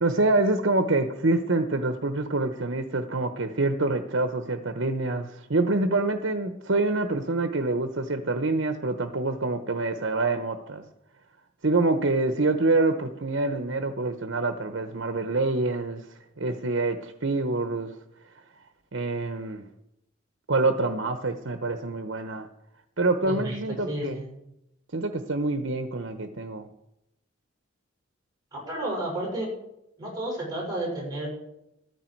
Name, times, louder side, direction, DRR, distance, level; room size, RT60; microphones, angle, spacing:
voice 1, 0.0-10.8 11.6-16.0 16.4-17.9 18.9-19.7 20.5-22.5 23.0-24.2 24.9-26.7, right 2 dB, 70° right, 7 dB, 1.0 m, -26 dB
voice 2, 23.2-23.6 23.9-24.3 28.5-29.5 30.0-31.3, right 1 dB, 20° right, -4 dB, 5.7 m, -31 dB
14.5 x 13.5 x 4.6 m, 0.84 s
head